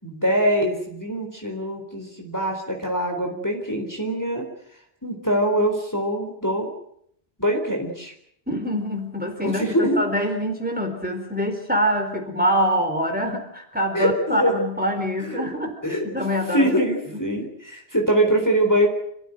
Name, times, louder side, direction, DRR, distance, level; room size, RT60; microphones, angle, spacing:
voice 1, 0.0-4.5 5.0-6.7 7.4-8.1 9.4-10.0 13.9-14.5 15.2-15.4 15.8-16.1 16.5-18.9, equal, 20° left, 2 dB, 3.9 m, -23 dB
voice 2, 8.5-9.6 10.0-15.7 16.0-16.8, equal, 10° right, 4 dB, 4.2 m, -24 dB
27.5 x 15.5 x 9.1 m, 0.71 s
omnidirectional pair, 1.0 m